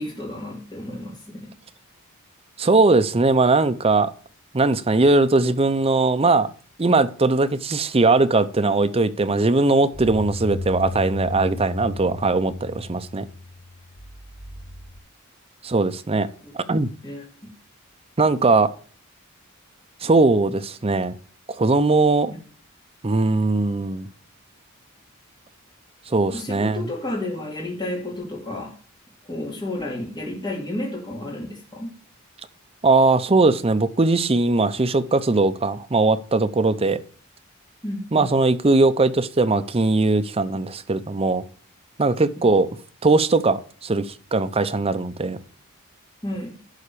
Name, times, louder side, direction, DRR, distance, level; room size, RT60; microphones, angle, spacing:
voice 1, 0.0-1.5 16.4-16.5 17.0-17.2 26.3-28.7 29.2-31.9 37.8-38.3 42.4-42.5 46.2-46.6, left 1 dB, 20° left, 2.6 m, -31 dB
voice 2, 2.6-4.1 4.5-6.5 6.8-13.3 15.6-16.3 16.5-16.9 18.2-18.7 20.0-21.1 21.5-22.3 23.0-24.1 26.1-26.9 32.8-37.0 38.1-41.4 42.0-42.8 43.0-45.4, right 3 dB, 25° right, 0.6 m, -20 dB
sound 1, 9.9-15.0, left 2 dB, 5° right, 2.5 m, -34 dB
11.5 x 4.3 x 6.8 m
head